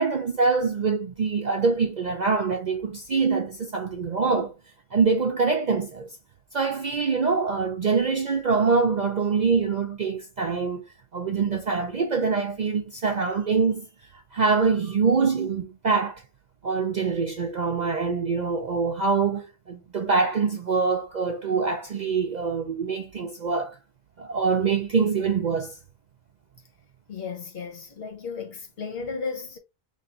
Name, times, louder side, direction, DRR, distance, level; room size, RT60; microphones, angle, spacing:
voice 1, 0.0-4.5 4.9-6.2 6.5-10.9 11.1-13.9 14.3-16.2 16.6-23.8 24.2-25.8, right 4 dB, 50° right, 0.5 m, -24 dB
voice 2, 27.1-29.6, left 5 dB, 55° left, 1.2 m, -34 dB
3.2 x 2.5 x 4.2 m
omnidirectional pair, 1.2 m